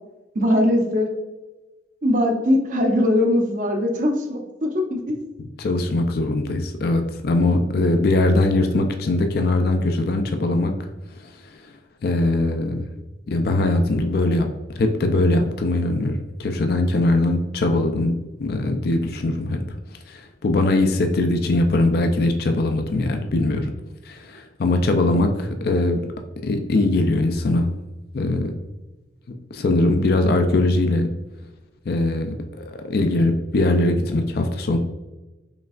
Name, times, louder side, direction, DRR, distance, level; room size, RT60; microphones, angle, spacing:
voice 1, 0.3-1.1 2.0-5.1, left 1 dB, 45° right, 3 dB, 0.7 m, -20 dB
voice 2, 5.6-10.7 12.0-12.9 13.3-14.5 14.8-19.6 20.1-23.7 24.1-26.0 26.4-27.7 28.1-28.5 29.5-31.1 31.9-34.8, left 2 dB, 60° left, 6 dB, 0.4 m, -21 dB
5.1 x 3.4 x 2.4 m, 1.1 s
head